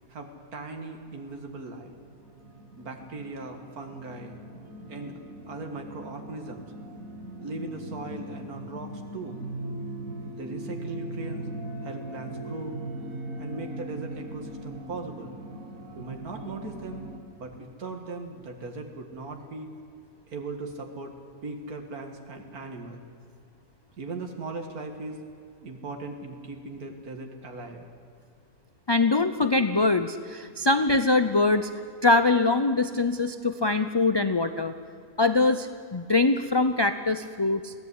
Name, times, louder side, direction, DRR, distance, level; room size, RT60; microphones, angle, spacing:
voice 1, 0.1-1.9 2.7-4.3 4.9-5.2 5.5-6.7 7.4-9.4 10.3-11.5 11.8-12.8 13.4-15.3 16.0-17.1 17.4-19.7 20.3-23.0 24.0-25.2 25.6-27.8, right 3 dB, 90° right, 3 dB, 2.4 m, -38 dB
sound 1, 2.0-17.2, right 1 dB, 70° right, 2.3 m, -40 dB
voice 2, 28.9-31.7 32.0-34.7 35.2-37.7, left 3 dB, 35° left, 10 dB, 0.4 m, -23 dB
22.0 x 16.5 x 9.8 m, 2.3 s
omnidirectional pair, 1.5 m